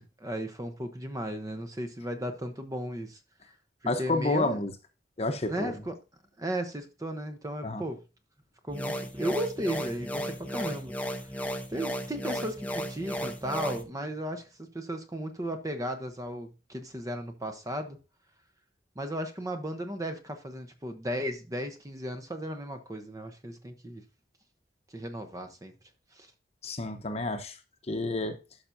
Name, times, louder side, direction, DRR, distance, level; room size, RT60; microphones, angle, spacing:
voice 1, 0.0-3.2 3.8-4.6 5.5-5.9 6.4-8.0 8.6-11.4 11.7-18.0 19.0-24.0 24.9-25.7 26.1-26.3, right 1 dB, 20° right, 0.8 m, -35 dB
voice 2, 3.9-4.7 5.2-5.8 7.6-7.8 26.6-27.6 27.9-28.4, left 2 dB, 35° left, 0.9 m, -30 dB
sound 1, 8.7-13.8, equal, 10° left, 0.8 m, -35 dB
11.5 x 5.7 x 2.7 m
head